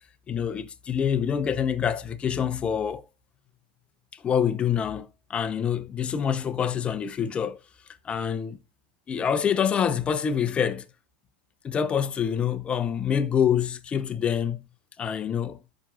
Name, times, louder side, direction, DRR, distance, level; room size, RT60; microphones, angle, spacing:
voice 1, 0.3-3.0 4.1-7.6 8.0-8.6 9.1-10.9 11.6-14.7 15.0-15.6, left 8 dB, 20° left, 0.8 m, -26 dB
14.0 x 6.2 x 2.4 m
supercardioid pair, 140°, 5 cm